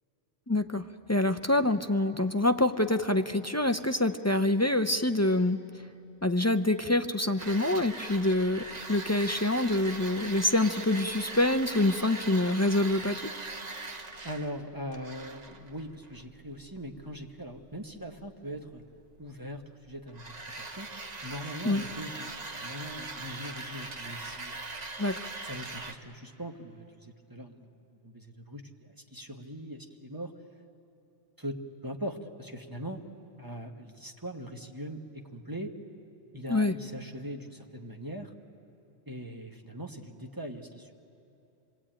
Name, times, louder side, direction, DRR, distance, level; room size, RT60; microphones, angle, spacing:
voice 1, 0.5-5.6 6.2-13.3 21.6-21.8 25.0-25.3 36.5-36.7, left 1 dB, 20° left, 8 dB, 0.4 m, -26 dB
sound 1, 7.4-25.9, right 3 dB, 40° right, 1.2 m, -41 dB
voice 2, 14.2-18.8 19.2-20.9 21.2-24.7 25.4-27.7 28.0-30.3 31.4-33.0 33.4-35.7 36.3-38.3 39.1-40.9, equal, 20° right, 3 dB, 1.4 m, -41 dB
27.0 x 22.0 x 8.9 m, 3.0 s
omnidirectional pair, 1.2 m